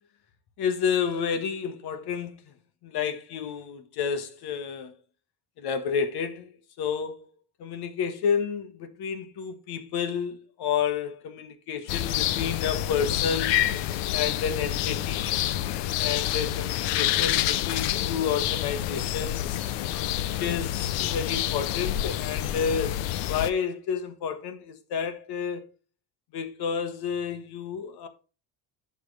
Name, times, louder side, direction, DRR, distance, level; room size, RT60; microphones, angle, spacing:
voice 1, 0.6-2.4 2.8-4.9 5.6-7.3 7.6-13.7 14.1-15.4 16.0-19.6 20.4-23.0 23.3-25.7 26.3-28.1, left 7 dB, 60° left, 1.6 m, -30 dB
sound 1, 11.9-23.5, left 13 dB, 80° left, 0.8 m, -28 dB
11.5 x 6.1 x 3.3 m
cardioid pair, 130°, 42 cm